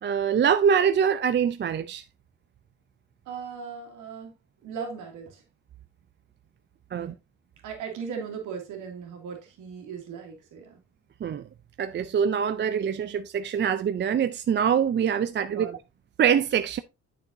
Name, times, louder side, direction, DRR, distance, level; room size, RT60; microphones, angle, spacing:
voice 1, 0.0-2.0 6.9-7.1 11.2-11.4 11.8-15.7 16.2-16.8, right 7 dB, 40° right, 0.4 m, -24 dB
voice 2, 3.3-4.4 4.6-5.4 6.9-7.1 7.6-10.8 15.5-15.8, right 6 dB, 90° right, 2.5 m, -38 dB
8.7 x 6.8 x 2.7 m
cardioid pair, 90°, 30 cm